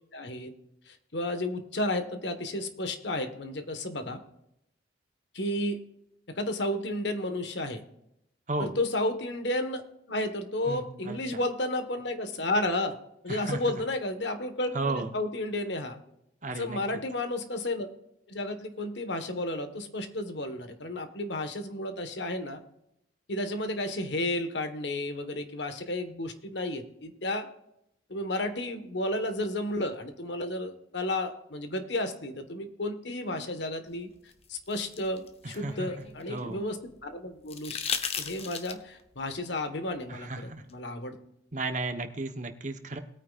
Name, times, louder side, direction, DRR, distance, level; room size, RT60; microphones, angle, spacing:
voice 1, 0.1-0.5 0.9-4.2 5.3-5.8 6.3-7.8 8.6-13.0 13.2-16.0 16.6-17.9 18.3-22.6 23.3-27.5 28.1-34.1 34.5-37.8 38.1-41.2, left 1 dB, 70° left, 8 dB, 1.4 m, -32 dB
voice 2, 10.7-11.2 13.3-13.6 14.7-15.1 16.4-16.8 35.4-36.6 40.1-40.6 41.5-43.0, right 2 dB, 40° right, 7 dB, 1.0 m, -34 dB
sound 1, 34.3-36.6 37.5-39.0 40.7-40.8, left 6 dB, 35° left, 0.9 m, -36 dB
20.0 x 9.3 x 2.5 m, 0.80 s
head